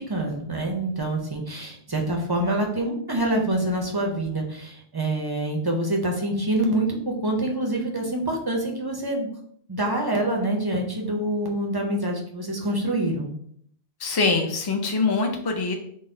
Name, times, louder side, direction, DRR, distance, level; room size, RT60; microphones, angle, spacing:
voice 1, 0.0-9.3 9.7-13.3, right 1 dB, 35° right, 0 dB, 0.4 m, -26 dB
voice 2, 14.0-15.7, left 4 dB, 35° left, 3 dB, 0.4 m, -23 dB
3.9 x 2.1 x 3.7 m, 0.66 s
omnidirectional pair, 1.1 m